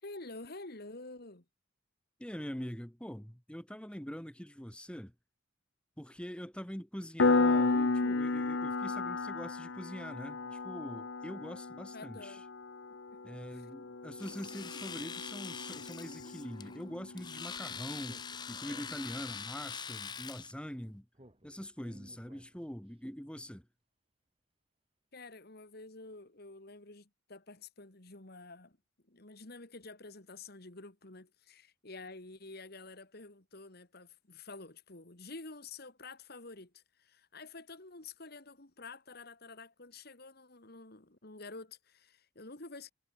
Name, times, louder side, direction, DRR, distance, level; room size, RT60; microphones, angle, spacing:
voice 1, 0.0-1.5 11.9-12.4 12.9-13.7 25.1-28.8 29.0-42.9, left 3 dB, 50° left, 2.3 m, -49 dB
voice 2, 2.2-5.1 6.0-12.4 13.2-21.1 21.4-23.7, equal, 5° left, 1.7 m, -44 dB
Piano, 7.2-17.6, left 3 dB, 70° left, 0.9 m, -33 dB
Domestic sounds home sounds, 14.2-20.5, left 6 dB, 20° left, 0.5 m, -44 dB
Speech, 18.0-19.9 21.1-22.9, equal, 30° right, 4.2 m, -58 dB
head